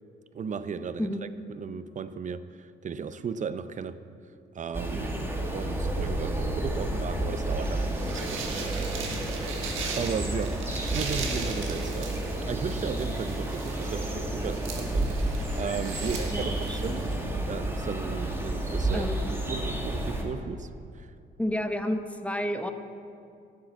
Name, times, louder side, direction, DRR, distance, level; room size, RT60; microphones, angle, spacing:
voice 1, 0.3-1.1 1.5-4.0 4.5-5.1 5.5-9.1 9.7-12.1 12.5-17.1 17.5-19.1 19.5-20.7 20.9-21.1, right 6 dB, 40° right, 13 dB, 0.6 m, -35 dB
sound 1, 4.7-20.2, right 1 dB, 10° right, 1.8 m, -31 dB
voice 2, 4.9-5.3 16.3-16.9 18.9-19.3 21.4-22.7, equal, 5° left, 7 dB, 0.8 m, -31 dB
sound 2, 7.7-17.1, right 5 dB, 90° right, 1.6 m, -39 dB
11.5 x 6.7 x 7.9 m, 2.5 s
cardioid pair, 90°, 20 cm